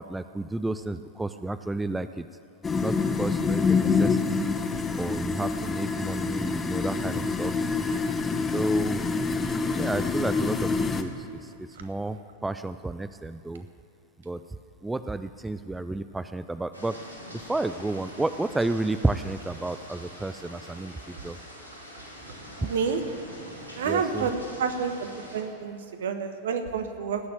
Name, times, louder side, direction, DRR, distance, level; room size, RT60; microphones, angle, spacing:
voice 1, 0.0-2.3 2.8-4.6 5.0-7.5 8.5-9.1 9.6-13.7 14.2-14.4 14.8-17.0 17.3-21.4 23.8-24.3, right 2 dB, 5° right, 11 dB, 0.4 m, -31 dB
sound 1, 2.6-11.0, left 4 dB, 15° left, 1.0 m, -26 dB
sound 2, 16.7-25.4, equal, 85° right, 3.1 m, -44 dB
voice 2, 22.6-23.0 23.8-27.2, right 6 dB, 60° right, 8 dB, 1.3 m, -29 dB
18.0 x 7.0 x 9.0 m, 2.6 s
figure-of-eight pair, 90°, 0 cm